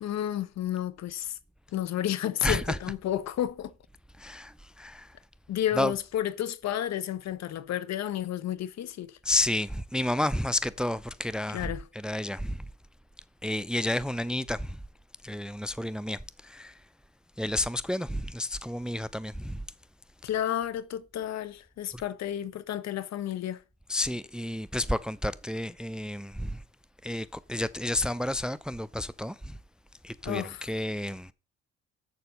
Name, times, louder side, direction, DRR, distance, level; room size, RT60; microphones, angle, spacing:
voice 1, 0.0-1.4 1.7-3.7 5.5-9.2 11.5-11.8 20.2-23.6 30.2-30.7, left 11 dB, 55° left, 1.0 m, -31 dB
voice 2, 2.4-2.8 4.2-5.1 5.8-5.9 9.2-11.7 11.9-12.6 13.4-14.8 15.2-16.7 17.4-19.6 23.9-26.6 27.0-29.6 30.0-31.3, left 1 dB, ahead, 0.6 m, -31 dB
7.6 x 6.9 x 6.5 m
hypercardioid pair, 50°, 32 cm